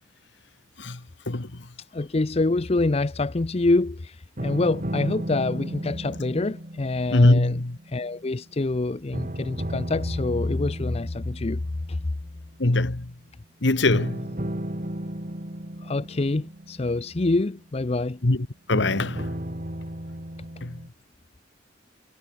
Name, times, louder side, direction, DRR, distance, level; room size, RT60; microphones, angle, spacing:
voice 1, 1.3-1.6 7.1-7.8 12.6-13.1 13.6-14.3 18.2-19.3 20.6-20.8, left 2 dB, 65° left, 1.4 m, -22 dB
voice 2, 1.9-7.6 7.9-11.6 11.9-12.0 15.8-18.2, left 2 dB, 30° left, 0.6 m, -26 dB
sound 1, 4.4-8.7 9.1-12.4 13.9-17.9 18.7-20.9, right 1 dB, 40° right, 3.2 m, -35 dB
head